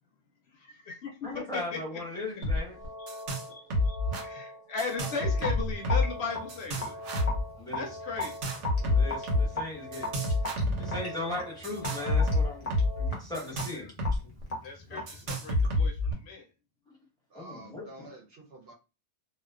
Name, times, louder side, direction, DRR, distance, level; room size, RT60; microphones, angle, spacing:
voice 1, 0.6-1.1 1.5-1.8 2.1-2.4 3.5-7.0 7.7-8.4 9.7-9.9 13.7-13.9 14.6-16.4, left 5 dB, 70° left, 0.8 m, -38 dB
voice 2, 1.2-2.8 7.6-7.9 8.8-10.1 10.8-12.7 13.0-13.9 14.2-14.3 17.3-18.1, left 2 dB, 5° left, 0.8 m, -38 dB
sound 1, 2.4-2.6 2.8-3.5 3.7-4.2 4.8-6.2 6.5-7.4 8.2-9.5 9.9-11.0 11.6-14.2 14.4-14.5 15.1-16.1, left 2 dB, 85° right, 1.0 m, -28 dB
sound 2, 2.6-13.1, equal, 35° right, 0.4 m, -44 dB
Raindrop / Drip, 5.4-15.9, left 2 dB, 40° left, 0.7 m, -39 dB
voice 3, 14.9-15.7 17.3-18.7, right 2 dB, 60° right, 0.8 m, -50 dB
2.4 x 2.2 x 2.3 m
omnidirectional pair, 1.2 m